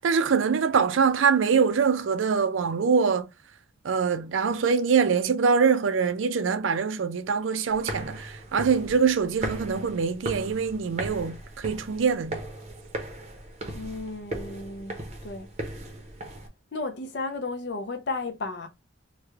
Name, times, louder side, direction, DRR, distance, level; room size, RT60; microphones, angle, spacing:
voice 1, 0.0-3.3 3.8-12.4, right 6 dB, 80° right, 0.4 m, -24 dB
sound 1, 7.7-16.5, right 1 dB, 35° right, 0.7 m, -37 dB
voice 2, 13.6-15.5 16.7-18.7, left 3 dB, 60° left, 0.5 m, -34 dB
3.2 x 2.2 x 3.3 m
head